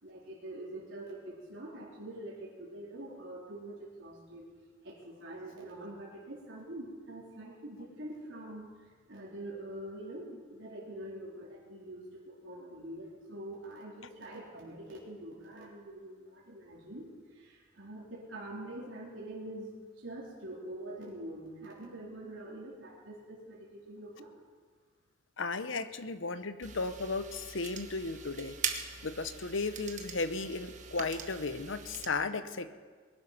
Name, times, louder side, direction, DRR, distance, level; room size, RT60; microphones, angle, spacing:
voice 1, 0.0-4.5 4.8-19.7 20.0-24.3, right 1 dB, 70° right, -5 dB, 3.5 m, -45 dB
voice 2, 25.4-28.6 29.0-32.7, left 3 dB, 75° left, 11 dB, 0.9 m, -35 dB
sound 1, 26.6-32.1, right 7 dB, 40° right, 1.2 m, -42 dB
21.5 x 11.5 x 5.8 m, 1.6 s
head